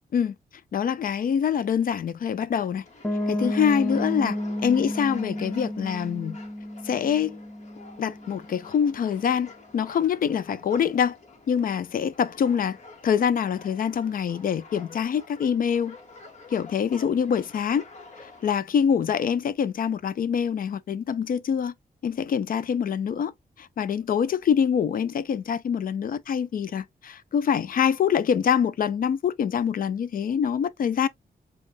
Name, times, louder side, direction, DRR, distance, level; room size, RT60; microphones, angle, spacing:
voice 1, 0.7-2.8 3.3-4.4 4.6-6.4 6.8-7.4 8.0-11.2 11.5-12.8 13.0-16.0 16.5-17.8 18.2-21.7 22.0-23.3 23.6-31.1, left 7 dB, 60° left, 0.5 m, -25 dB
sound 1, 2.8-18.5, left 3 dB, 45° left, 1.3 m, -48 dB
Piano, 3.0-8.7, left 1 dB, 10° left, 0.5 m, -31 dB
7.4 x 2.5 x 2.5 m
wide cardioid pair, 150°, 16 cm